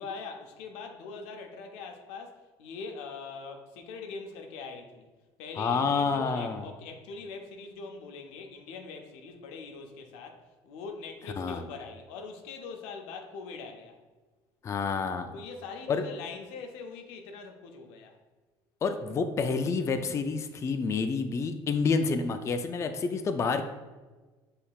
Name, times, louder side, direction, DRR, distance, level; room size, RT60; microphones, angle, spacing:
voice 1, 0.0-5.1 5.4-14.0 15.3-18.2, left 4 dB, 90° left, 4 dB, 0.6 m, -42 dB
voice 2, 5.6-6.7 11.4-11.6 14.6-15.4 15.9-16.0 18.8-23.6, left 4 dB, 30° left, 8 dB, 0.3 m, -28 dB
5.5 x 3.2 x 2.3 m, 1.3 s
cardioid pair, 100°, 10 cm